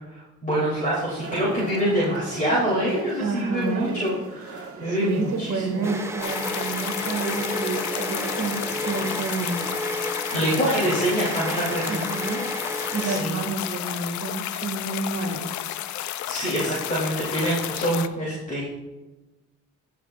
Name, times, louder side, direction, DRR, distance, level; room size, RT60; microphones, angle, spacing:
voice 1, 0.1-5.8 10.3-12.3 12.9-13.3 16.3-18.7, equal, 25° left, -8 dB, 3.1 m, -26 dB
sound 1, 1.2-9.7, right 4 dB, 50° right, 1.7 m, -38 dB
voice 2, 3.2-3.9 4.9-9.6 11.8-12.4 12.9-15.6, right 3 dB, 65° right, 2 dB, 1.8 m, -29 dB
sound 2, 5.0-13.7, equal, 10° right, 0.7 m, -32 dB
sound 3, 6.2-18.1, left 12 dB, 75° left, 0.5 m, -32 dB
15.0 x 5.9 x 2.5 m, 1.1 s
cardioid pair, 90°, 30 cm